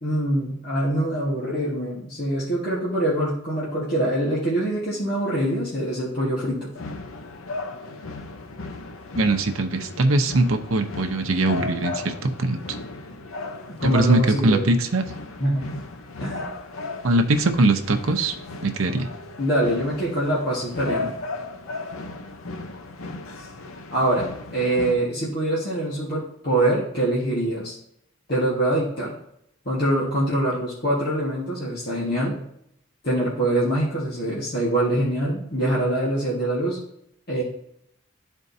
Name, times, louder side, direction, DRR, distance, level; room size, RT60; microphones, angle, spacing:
voice 1, 0.0-6.7 13.8-14.7 15.4-15.7 16.2-16.5 19.4-21.1 23.9-27.7 28.3-29.1 29.6-32.4 33.0-36.8 37.3-37.4, right 1 dB, 50° left, -6 dB, 1.5 m, -24 dB
sound 1, 6.8-25.0, left 3 dB, 90° left, 0.7 m, -36 dB
voice 2, 9.2-12.8 13.8-15.0 17.0-18.4 18.6-19.1, right 2 dB, 85° right, 6 dB, 0.7 m, -21 dB
12.0 x 4.4 x 2.7 m, 0.74 s
head